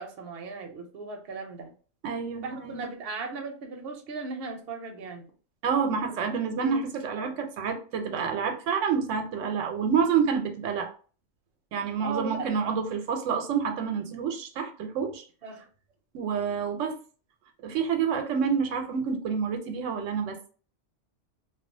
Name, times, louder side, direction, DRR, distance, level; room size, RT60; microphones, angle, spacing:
voice 1, 0.0-1.7 2.4-5.3 6.0-6.2 6.6-6.8 7.2-7.4 12.0-12.8 15.4-15.7, right 4 dB, 60° right, 0.8 m, -37 dB
voice 2, 2.0-2.9 5.6-10.9 11.7-15.2 16.1-17.0 17.6-20.5, right 6 dB, 90° right, 0.9 m, -28 dB
2.3 x 2.3 x 2.6 m
omnidirectional pair, 1.2 m